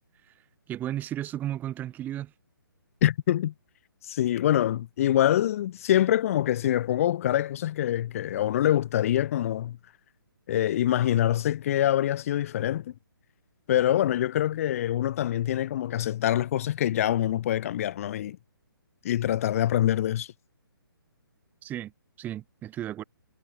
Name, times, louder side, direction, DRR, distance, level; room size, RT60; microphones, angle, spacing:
voice 1, 0.7-2.3 21.6-21.9 22.2-23.0, right 12 dB, 15° right, 3.0 m, -34 dB
voice 2, 3.0-3.5 4.0-9.8 10.5-12.9 13.7-18.4 19.0-20.3, left 12 dB, 40° left, 1.2 m, -25 dB
hypercardioid pair, 150°, 12 cm